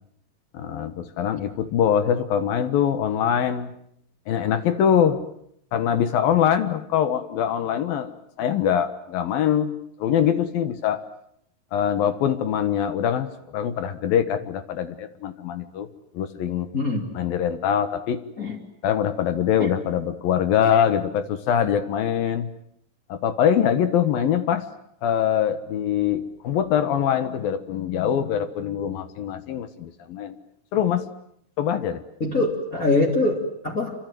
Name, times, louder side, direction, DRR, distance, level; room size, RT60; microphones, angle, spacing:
voice 1, 0.5-3.7 4.3-5.2 5.7-8.1 8.4-11.0 11.7-15.9 16.1-16.7 17.1-18.2 18.8-22.5 23.1-24.7 25.0-30.4 30.7-31.1 31.6-32.0, left 9 dB, 65° left, 11 dB, 2.9 m, -23 dB
voice 2, 16.7-17.1 18.4-18.6 32.2-33.9, left 2 dB, 25° left, -1 dB, 2.9 m, -23 dB
28.5 x 25.0 x 7.7 m, 0.72 s
omnidirectional pair, 4.7 m